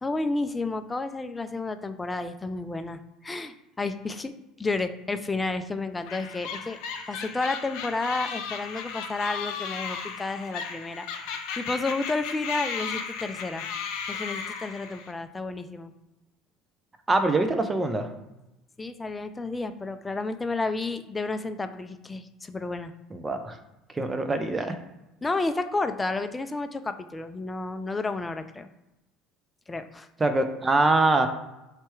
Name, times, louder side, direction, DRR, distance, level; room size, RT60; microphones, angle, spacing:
voice 1, 0.0-4.3 4.6-6.8 7.1-11.1 11.6-13.7 14.1-15.9 18.8-22.9 25.2-28.7 29.7-30.1, left 3 dB, 20° left, 9 dB, 0.4 m, -31 dB
sound 1, 6.1-15.1, left 6 dB, 65° left, 0.6 m, -35 dB
voice 2, 17.1-18.1 23.1-23.6 23.9-24.7 30.2-31.3, right 2 dB, 20° right, 7 dB, 0.6 m, -24 dB
3.3 x 2.9 x 4.6 m, 0.94 s
hypercardioid pair, 65°, 0 cm